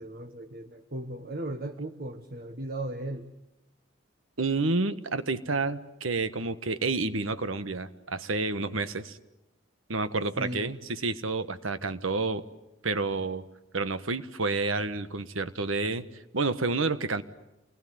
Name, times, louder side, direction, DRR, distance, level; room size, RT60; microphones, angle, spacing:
voice 1, 0.0-3.3 10.4-10.7, right 1 dB, 45° right, 6 dB, 1.3 m, -36 dB
voice 2, 4.4-9.2 9.9-12.4 12.8-13.4 13.7-16.1 16.3-17.2, right 3 dB, 85° right, 12 dB, 1.4 m, -29 dB
28.5 x 20.5 x 9.5 m, 0.94 s
head